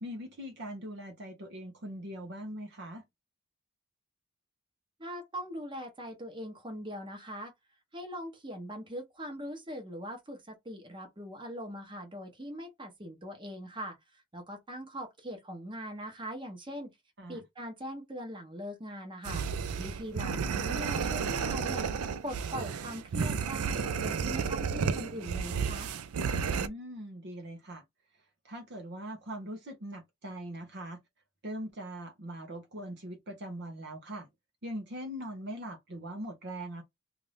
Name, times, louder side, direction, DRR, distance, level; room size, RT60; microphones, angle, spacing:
voice 1, 0.0-3.0 17.2-17.4 26.5-27.8 28.4-31.0 31.4-34.3 34.6-36.8, right 1 dB, 50° right, 0.8 m, -41 dB
voice 2, 5.0-7.5 7.9-14.0 14.3-16.9 17.3-19.4 19.8-21.8 22.2-25.9, equal, 20° right, 0.9 m, -41 dB
sound 1, 19.2-26.7, right 6 dB, 75° right, 0.4 m, -32 dB
2.6 x 2.5 x 3.3 m
head